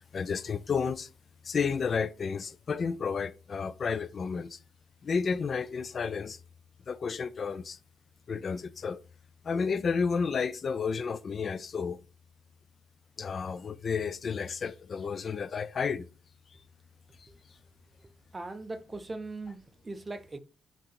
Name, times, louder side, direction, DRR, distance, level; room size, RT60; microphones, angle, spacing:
voice 1, 0.1-1.1 1.4-4.6 5.0-6.4 6.9-7.8 8.3-9.0 9.4-12.0 13.2-16.1, left 5 dB, 45° left, 0.4 m, -31 dB
voice 2, 18.3-20.4, right 3 dB, 20° right, 0.8 m, -40 dB
8.2 x 2.9 x 5.3 m
cardioid pair, 90°, 0 cm